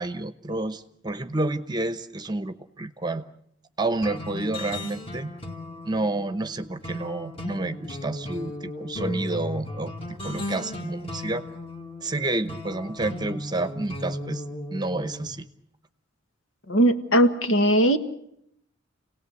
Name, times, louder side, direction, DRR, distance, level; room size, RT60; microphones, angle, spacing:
voice 1, 0.0-3.2 3.8-5.3 5.8-11.5 12.0-14.4 14.7-15.5, right 2 dB, 20° right, 11 dB, 0.9 m, -29 dB
sound 1, 4.0-15.3, left 1 dB, 30° left, 2.2 m, -36 dB
voice 2, 16.7-18.0, right 1 dB, 70° left, 7 dB, 1.8 m, -19 dB
29.5 x 18.5 x 8.2 m, 0.75 s
head